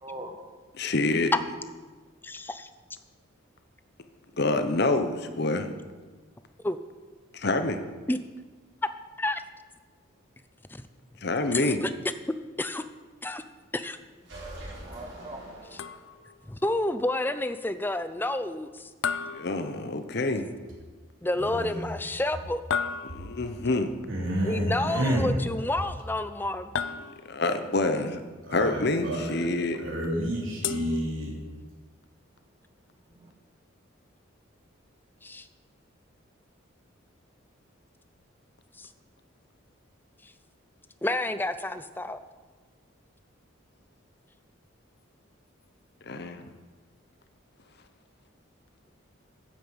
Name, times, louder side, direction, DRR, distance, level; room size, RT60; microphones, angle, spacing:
voice 1, 0.0-0.4 14.4-15.9 22.8-22.9 23.2-23.4 33.1-33.3, right 1 dB, 20° right, 1.5 m, -44 dB
voice 2, 0.8-1.3 4.4-5.7 7.3-7.8 11.2-11.8 19.3-20.5 23.0-23.9 27.3-28.2 28.5-29.8 46.0-46.5, left 2 dB, 50° left, 0.9 m, -27 dB
voice 3, 2.2-2.7 6.6-6.8 8.1-8.2 9.2-9.4 11.5-11.9 12.6-12.8 13.2-13.4 13.7-14.0 16.5-18.8 21.2-22.6 24.4-26.6 35.2-35.5 38.8-38.9 41.0-42.2, left 1 dB, 10° left, 0.5 m, -29 dB
sound 1, 14.2-16.3, right 1 dB, 55° right, 4.8 m, -43 dB
sound 2, 15.8-16.4 19.0-20.3 22.7-23.6 26.7-27.6 30.6-31.7, left 6 dB, 65° left, 0.5 m, -34 dB
voice 4, 21.3-22.0 24.1-25.3 28.4-29.3 29.8-31.3, equal, 70° right, 3.4 m, -29 dB
9.4 x 9.1 x 8.0 m
head